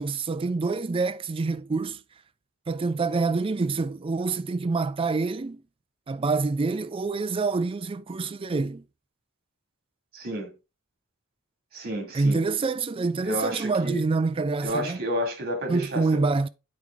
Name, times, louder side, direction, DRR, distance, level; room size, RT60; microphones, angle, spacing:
voice 1, 0.0-2.0 2.7-5.6 6.1-8.8 12.1-15.0 15.7-16.5, right 3 dB, 25° right, 0.4 m, -26 dB
voice 2, 10.1-10.5 11.7-12.4 13.2-14.0 14.6-16.2, right 1 dB, 45° right, 2.4 m, -30 dB
8.7 x 4.7 x 3.5 m
head